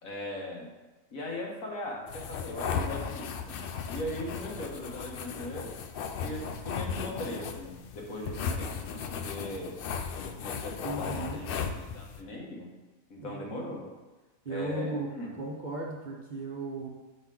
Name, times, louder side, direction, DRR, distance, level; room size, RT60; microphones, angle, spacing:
voice 1, 0.0-0.7 1.1-3.6 3.9-5.7 6.2-9.7 10.2-12.7 13.1-13.9 14.5-15.4, left 1 dB, 85° left, -1 dB, 1.7 m, -39 dB
sound 1, 2.1-12.2, left 6 dB, 70° left, 0.5 m, -36 dB
voice 2, 10.8-11.5 13.2-13.8 14.4-15.1 15.4-16.9, right 3 dB, 40° right, -1 dB, 0.8 m, -36 dB
5.9 x 5.0 x 3.8 m, 1.2 s
omnidirectional pair, 1.4 m